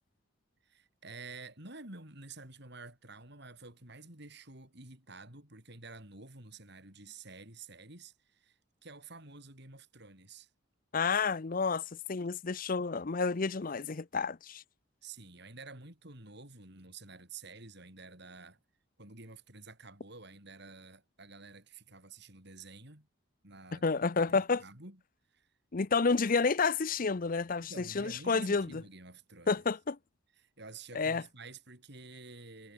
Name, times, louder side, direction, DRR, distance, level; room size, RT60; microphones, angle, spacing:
voice 1, 0.6-10.5 15.0-18.6 19.0-23.1 23.4-23.9 24.3-25.0 25.3-25.5 27.6-29.6 30.4-32.7, right 3 dB, 55° right, 6.3 m, -50 dB
voice 2, 10.9-14.6 23.8-24.6 25.7-28.8 29.5-30.0 30.9-31.2, left 4 dB, 40° left, 0.6 m, -30 dB
head